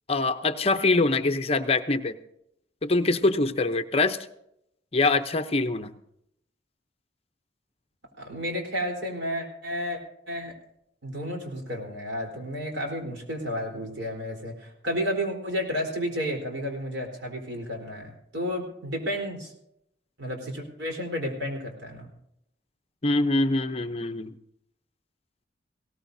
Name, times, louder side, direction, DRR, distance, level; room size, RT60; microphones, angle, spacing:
voice 1, 0.1-2.2 2.8-4.2 4.9-5.9 23.0-24.3, left 2 dB, 35° left, 9 dB, 0.7 m, -24 dB
voice 2, 8.2-10.0 10.3-10.5 11.0-19.5 20.2-22.1, equal, 85° right, 1 dB, 3.9 m, -32 dB
19.0 x 17.5 x 2.7 m, 0.78 s
head